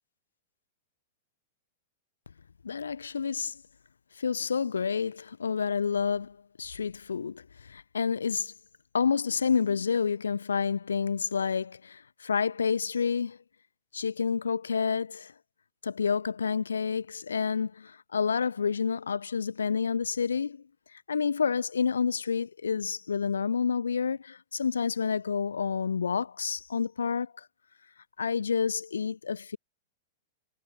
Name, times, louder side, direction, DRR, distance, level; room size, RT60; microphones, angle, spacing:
voice 1, 2.6-3.6 4.2-8.5 8.9-13.4 13.9-15.3 15.8-20.6 20.9-27.5 28.2-29.6, left 6 dB, 75° left, 4.6 m, -29 dB
figure-of-eight pair, 100°, 0 cm